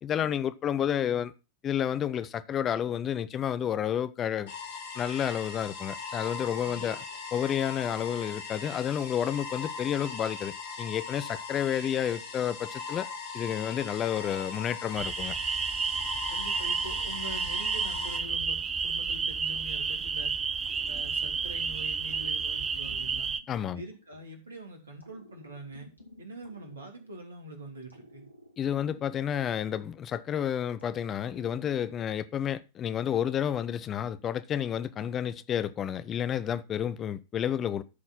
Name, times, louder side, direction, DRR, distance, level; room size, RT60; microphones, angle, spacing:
voice 1, 0.0-1.3 1.6-4.5 5.0-7.0 7.3-13.1 13.3-15.3 23.5-23.8 28.6-37.8, left 9 dB, 30° left, 0.7 m, -30 dB
sound 1, 4.5-18.2, left 5 dB, 55° left, 3.1 m, -40 dB
voice 2, 6.6-7.2 16.3-20.3 20.9-23.3 23.7-25.9 26.2-28.2, right 1 dB, 70° right, 3.0 m, -44 dB
sound 2, 15.0-23.4, right 5 dB, 20° right, 0.7 m, -31 dB
sound 3, 20.6-21.6 22.1-24.5 25.0-27.4 27.9-30.3 30.8-32.3, left 1 dB, 90° left, 2.2 m, -54 dB
13.0 x 4.4 x 5.6 m
figure-of-eight pair, 90°, 0 cm